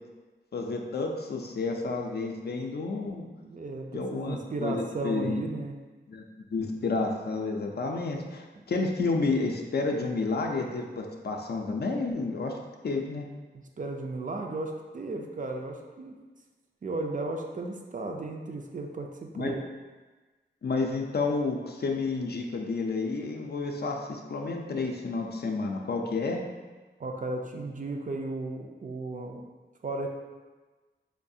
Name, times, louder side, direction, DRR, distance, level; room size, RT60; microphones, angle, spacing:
voice 1, 0.5-3.3 3.9-5.4 6.1-6.2 6.5-12.6 12.8-13.3 19.4-19.5 20.6-26.4, left 3 dB, 55° left, 2 dB, 0.4 m, -30 dB
voice 2, 3.4-5.7 13.5-16.2 16.8-19.6 27.0-29.4 29.8-30.1, right 2 dB, 40° right, 3 dB, 0.4 m, -35 dB
4.5 x 2.4 x 2.6 m, 1.3 s
wide cardioid pair, 105°, 20 cm